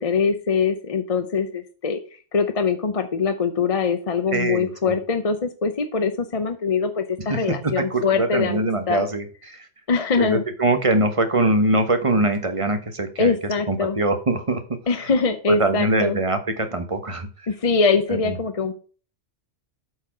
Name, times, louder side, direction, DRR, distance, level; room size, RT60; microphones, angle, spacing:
voice 1, 0.0-2.0 2.3-9.0 9.9-10.4 13.2-14.0 14.9-16.2 17.5-18.7, left 5 dB, 35° left, 8 dB, 0.6 m, -23 dB
voice 2, 4.3-4.9 7.3-7.4 7.8-9.6 10.2-13.3 13.7-14.6 15.5-17.3, right 2 dB, 30° right, 7 dB, 1.2 m, -22 dB
8.7 x 4.7 x 5.9 m, 0.38 s
omnidirectional pair, 1.2 m